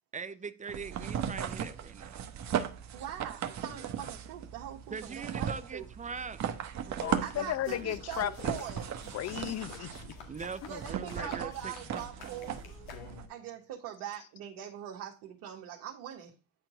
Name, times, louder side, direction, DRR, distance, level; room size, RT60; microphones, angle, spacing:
voice 1, 0.1-2.1 4.9-6.4 6.7-7.9 10.3-12.3, right 5 dB, 15° right, 0.6 m, -42 dB
sound 1, 0.7-13.3, right 9 dB, 40° right, 1.1 m, -38 dB
voice 2, 2.9-5.9 7.2-8.9 10.6-12.6 13.3-16.3, right 10 dB, 60° right, 1.4 m, -42 dB
voice 3, 7.0-8.5 9.1-10.1 11.2-11.3, left 12 dB, 35° left, 0.8 m, -35 dB
sound 2, 7.6-13.5, left 7 dB, 65° left, 1.9 m, -50 dB
9.4 x 4.5 x 3.7 m
hypercardioid pair, 65°, 43 cm